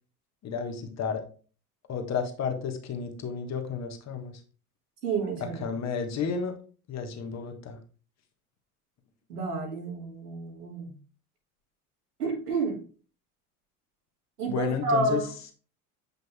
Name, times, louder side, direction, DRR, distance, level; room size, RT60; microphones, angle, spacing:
voice 1, 0.4-1.2 1.9-4.3 5.6-6.6 6.9-7.8 14.5-15.2, left 6 dB, 35° left, 5 dB, 1.3 m, -32 dB
voice 2, 5.0-5.7 9.3-10.9 12.2-12.8 14.4-15.3, right 3 dB, 80° right, 0 dB, 1.9 m, -30 dB
7.7 x 5.3 x 2.3 m, 0.39 s
figure-of-eight pair, 65°, 46 cm